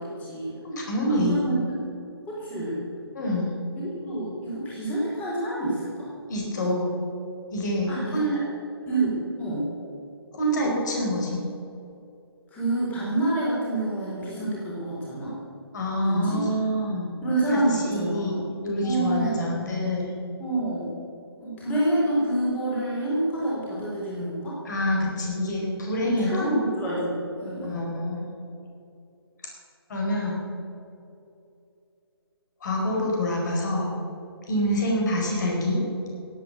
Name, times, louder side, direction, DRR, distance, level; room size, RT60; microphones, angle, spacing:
voice 1, 0.0-0.5 1.1-1.8 2.3-2.9 3.8-6.1 7.9-8.3 8.9-9.7 10.6-10.8 12.5-15.4 16.0-16.4 17.2-18.4 18.8-19.6 20.4-21.0 21.4-24.6 26.0-27.8, right 1 dB, 10° left, -6 dB, 4.1 m, -28 dB
voice 2, 0.6-1.4 3.1-3.5 6.3-6.9 7.5-8.4 10.3-11.4 15.7-17.2 17.5-20.1 24.6-26.5 27.7-28.3 29.9-30.4 32.6-34.0 34.5-35.8, equal, 45° left, -1 dB, 4.6 m, -26 dB
16.5 x 9.1 x 8.0 m, 2.7 s
figure-of-eight pair, 145°, 14 cm